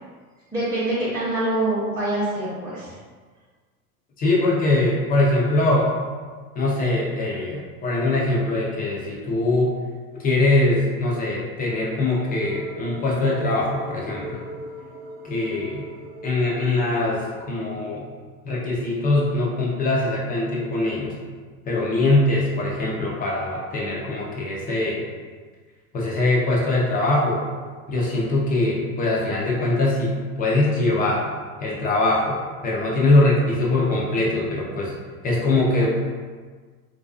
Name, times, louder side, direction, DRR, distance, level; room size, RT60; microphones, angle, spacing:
voice 1, 0.5-2.9, right 1 dB, 10° right, -11 dB, 0.7 m, -25 dB
voice 2, 4.2-5.9 6.6-9.7 10.2-14.4 15.2-15.8 16.2-18.1 18.4-21.1 21.6-25.0 25.9-27.4 27.9-31.2 31.6-34.9 35.2-35.9, left 2 dB, 20° left, -3 dB, 0.4 m, -22 dB
sound 1, 12.4-17.4, right 1 dB, 75° right, 0.6 m, -39 dB
2.5 x 2.2 x 2.3 m, 1.5 s
hypercardioid pair, 90°, 48 cm